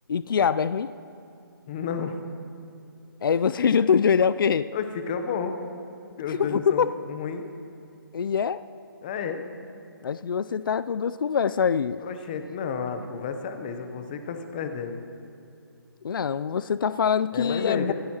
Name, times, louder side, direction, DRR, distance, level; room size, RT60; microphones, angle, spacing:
voice 1, 0.1-0.9 3.2-4.7 6.3-6.9 8.1-8.6 10.0-12.0 16.0-17.9, left 7 dB, 65° left, 15 dB, 0.4 m, -24 dB
voice 2, 1.7-2.2 4.7-5.6 6.2-7.4 9.0-9.4 12.0-15.0 17.3-17.9, left 6 dB, 20° left, 7 dB, 0.7 m, -31 dB
25.0 x 10.5 x 2.9 m, 2.5 s
hypercardioid pair, 165°, 12 cm